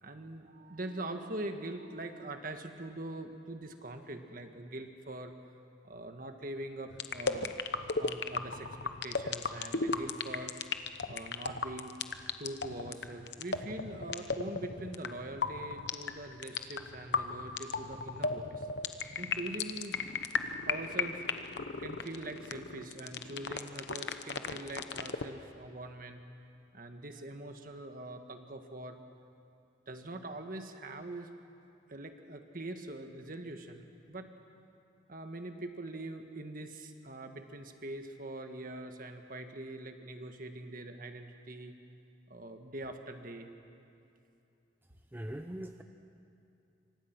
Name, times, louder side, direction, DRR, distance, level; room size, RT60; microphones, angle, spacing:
voice 1, 0.0-5.3 5.8-7.6 8.0-10.5 11.1-11.9 12.4-18.7 19.2-20.0 20.6-21.5 21.8-26.2 26.7-29.0 29.9-31.3 31.9-34.3 35.1-41.7 42.3-43.5, right 2 dB, 50° right, 6 dB, 1.6 m, -43 dB
sound 1, 6.9-25.3, left 4 dB, 60° left, 0.9 m, -35 dB
voice 2, 45.1-45.8, right 1 dB, 10° right, 5 dB, 0.7 m, -41 dB
27.0 x 24.5 x 6.1 m, 2.7 s
head